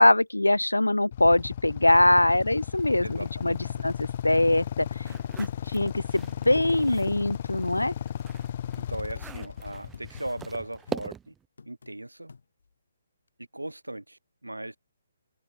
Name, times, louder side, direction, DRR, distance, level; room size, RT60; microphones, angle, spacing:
voice 1, 0.0-3.6 3.8-7.9, left 1 dB, 90° left, 0.6 m, -23 dB
Motorcycle / Idling, 1.1-11.0, left 10 dB, 45° left, 1.6 m, -35 dB
sound 1, 1.4-1.5 1.9-2.0 2.4-2.6 2.9-4.1 4.5-4.6 4.9-5.0 5.5-5.6 6.0-6.1 6.5-6.6 7.0-7.1 7.5-7.6 8.0-8.1 8.5-8.6 9.0-10.6 10.9-11.1 11.6-12.0 12.3-12.7 13.3-13.4, left 4 dB, 65° left, 6.7 m, -51 dB
voice 2, 3.0-3.6 8.8-11.3 11.7-12.3 13.5-14.8, right 1 dB, 90° right, 2.1 m, -38 dB
sound 2, 5.0-7.2 7.6-11.4, right 8 dB, 10° right, 6.7 m, -42 dB
figure-of-eight pair, 140°, 0 cm